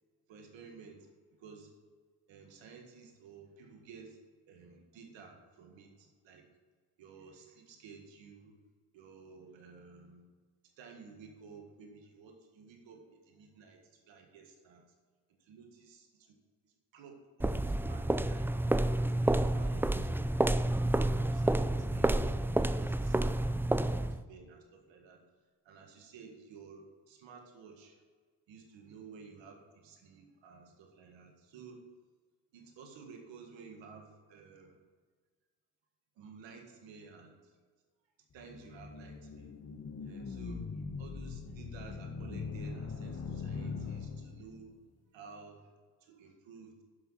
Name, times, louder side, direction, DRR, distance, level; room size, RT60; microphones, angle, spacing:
voice 1, 0.3-1.7 2.3-4.2 4.5-6.5 7.0-8.6 8.9-10.3 10.8-14.8 15.4-16.4 16.6-18.6 18.9-20.3 20.9-25.2 25.6-28.0 28.5-31.8 32.5-34.8 36.2-37.6 38.3-39.5 40.0-44.7 45.1-46.8, right 5 dB, 80° right, 3 dB, 1.9 m, -54 dB
sound 1, 17.4-24.2, right 1 dB, 5° right, 0.3 m, -29 dB
sound 2, 38.4-44.7, left 5 dB, 35° left, 1.2 m, -41 dB
11.0 x 6.1 x 5.7 m, 1.5 s
supercardioid pair, 65°, 44 cm